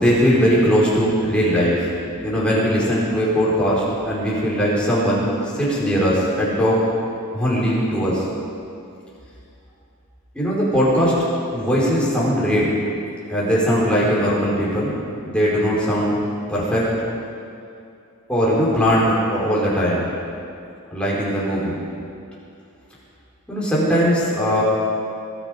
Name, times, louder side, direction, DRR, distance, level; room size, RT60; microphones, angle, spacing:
voice 1, 0.0-1.9 2.2-5.2 5.5-6.8 7.3-8.2 10.3-11.2 11.5-12.7 13.3-14.9 15.2-16.2 16.5-16.9 18.3-20.1 20.9-21.8 23.5-24.6, equal, 5° left, -7 dB, 4.8 m, -19 dB
22.5 x 12.0 x 5.2 m, 2.6 s
head